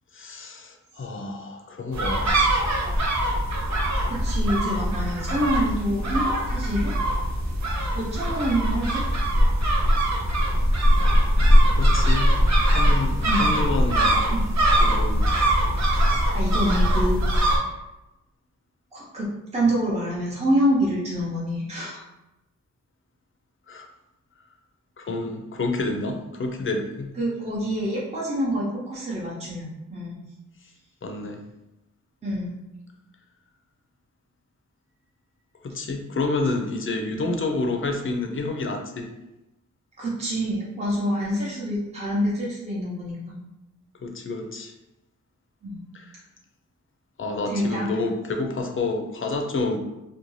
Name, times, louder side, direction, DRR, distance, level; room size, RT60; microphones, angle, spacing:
voice 1, 0.1-2.3 11.8-12.4 12.7-14.3 14.8-15.3 23.7-23.9 25.0-27.1 31.0-31.4 35.6-39.1 44.0-44.7 45.9-46.1 47.2-49.8, left 3 dB, 40° left, 3 dB, 0.5 m, -29 dB
sound 1, 1.9-17.6, equal, 60° right, 0.7 m, -21 dB
voice 2, 4.1-6.9 8.0-9.0 13.3-13.5 14.2-14.5 16.3-17.6 18.9-22.0 27.2-30.2 32.2-32.5 40.0-43.4 45.6-45.8 47.5-47.9, equal, 20° right, -6 dB, 0.7 m, -26 dB
2.6 x 2.2 x 3.1 m, 0.96 s
wide cardioid pair, 70°, 32 cm